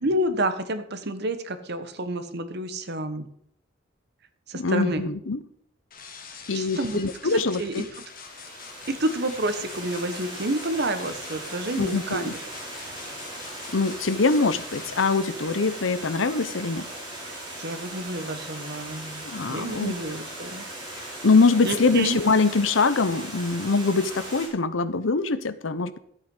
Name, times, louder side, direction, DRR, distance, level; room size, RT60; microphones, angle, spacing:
voice 1, 0.0-3.3 4.5-5.0 6.5-7.9 8.9-12.4 17.3-20.7 21.6-22.2, right 1 dB, 60° right, 10 dB, 1.2 m, -29 dB
voice 2, 4.5-5.4 6.5-7.8 11.8-12.3 13.7-16.9 19.2-19.9 21.2-26.0, left 3 dB, 80° left, 14 dB, 0.8 m, -23 dB
sound 1, 5.9-15.2, left 6 dB, 50° left, 1.6 m, -44 dB
Water, 8.0-24.5, right 1 dB, 20° right, 5.0 m, -39 dB
13.0 x 8.4 x 5.4 m, 0.68 s
head